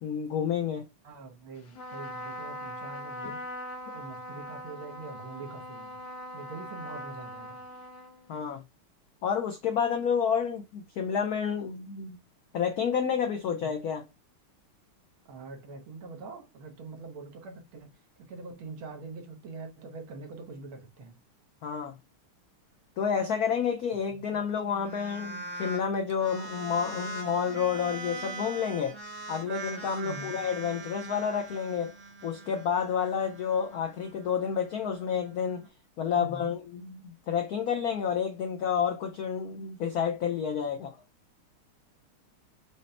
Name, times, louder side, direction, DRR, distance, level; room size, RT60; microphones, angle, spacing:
voice 1, 0.0-0.9 8.3-8.6 9.2-12.2 12.5-14.0 21.6-22.0 23.0-29.0 29.3-31.9 32.2-35.7 36.0-41.0, left 7 dB, 85° left, 0.8 m, -30 dB
voice 2, 1.0-3.5 3.9-6.0 6.3-7.6 13.6-13.7 15.3-21.2 24.3-24.4 30.0-30.4 36.2-36.5, right 3 dB, 75° right, 1.7 m, -44 dB
Trumpet, 1.7-8.6, equal, 55° left, 1.4 m, -41 dB
sound 1, 24.7-25.8 26.1-35.7, right 2 dB, 55° right, 1.1 m, -42 dB
5.2 x 2.1 x 4.1 m
omnidirectional pair, 2.4 m